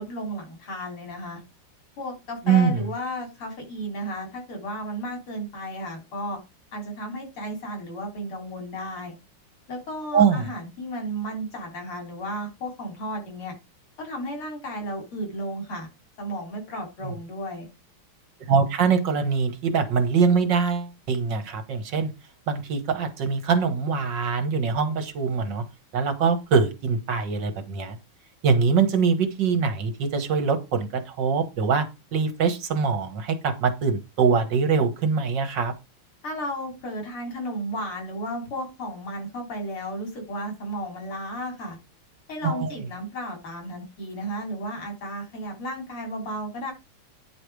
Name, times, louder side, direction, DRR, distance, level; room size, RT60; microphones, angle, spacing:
voice 1, 0.0-1.4 2.0-6.4 6.7-9.1 9.7-13.6 14.0-15.9 16.2-17.7 36.2-41.8 42.3-46.7, equal, 85° left, 2 dB, 4.3 m, -33 dB
voice 2, 2.5-2.8 10.1-10.5 17.0-17.1 18.5-22.1 22.5-25.6 25.9-28.0 28.4-31.9 32.1-35.7 42.4-42.7, right 5 dB, 60° right, 9 dB, 1.8 m, -23 dB
9.7 x 5.0 x 4.8 m, 0.25 s
omnidirectional pair, 2.3 m